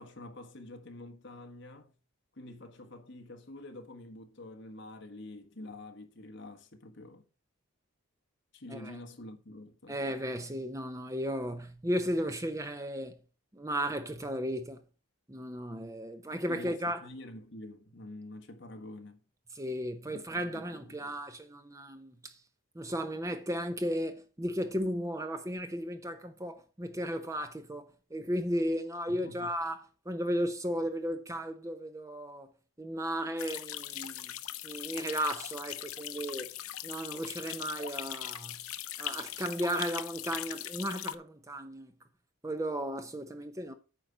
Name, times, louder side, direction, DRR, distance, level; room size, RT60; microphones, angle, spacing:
voice 1, 0.0-1.9 2.3-7.3 8.5-10.0 16.5-19.2 20.1-20.2 20.5-21.1 29.1-29.6, left 1 dB, 55° left, 1.5 m, -47 dB
voice 2, 9.9-13.2 13.5-14.8 15.3-17.0 19.5-22.4 22.7-32.5 32.8-34.3 34.6-36.5 36.8-38.6 39.0-41.9 42.4-43.7, equal, 15° right, 0.7 m, -35 dB
sound 1, 33.4-41.1, left 12 dB, 80° left, 0.7 m, -40 dB
9.2 x 5.8 x 5.1 m
head